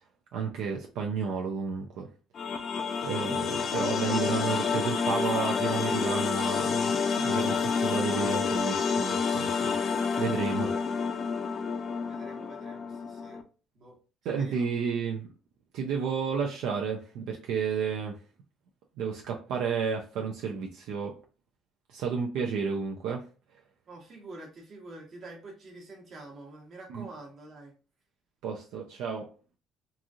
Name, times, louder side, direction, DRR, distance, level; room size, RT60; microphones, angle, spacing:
voice 1, 0.3-2.1 2.4-2.6 3.0-6.9 7.2-9.7 10.2-10.9 14.2-15.3 15.7-18.2 19.0-21.2 21.9-23.2 26.9-27.1 28.4-29.3, right 6 dB, 80° right, 1 dB, 0.4 m, -31 dB
sound 1, 2.3-13.4, left 5 dB, 45° left, 0.4 m, -29 dB
voice 2, 12.1-13.4 13.7-14.0 14.4-14.7 23.9-27.7, right 2 dB, 45° right, 1 dB, 1.0 m, -47 dB
2.9 x 2.6 x 2.4 m, 0.35 s
cardioid pair, 115°, 0 cm